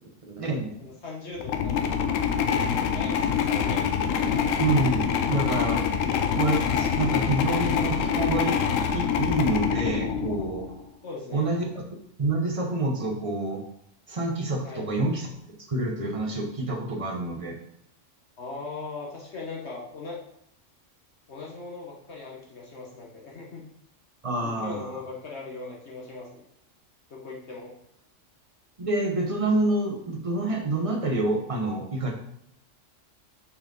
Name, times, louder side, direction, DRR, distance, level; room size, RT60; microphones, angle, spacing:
voice 1, 0.3-0.7 2.5-2.6 4.6-5.8 6.4-8.6 8.9-10.6 11.3-11.8 12.2-13.6 14.1-15.3 15.7-17.6 24.2-24.8 28.8-32.1, right 2 dB, 30° right, 2 dB, 0.9 m, -27 dB
voice 2, 0.8-1.9 2.7-3.9 11.0-11.6 14.6-14.9 18.4-20.2 21.3-23.7 24.4-26.4 27.1-27.7, left 3 dB, 60° left, -2 dB, 1.2 m, -39 dB
sound 1, 1.4-10.8, left 7 dB, 90° left, 1.0 m, -25 dB
5.9 x 4.3 x 3.9 m, 0.74 s
omnidirectional pair, 1.3 m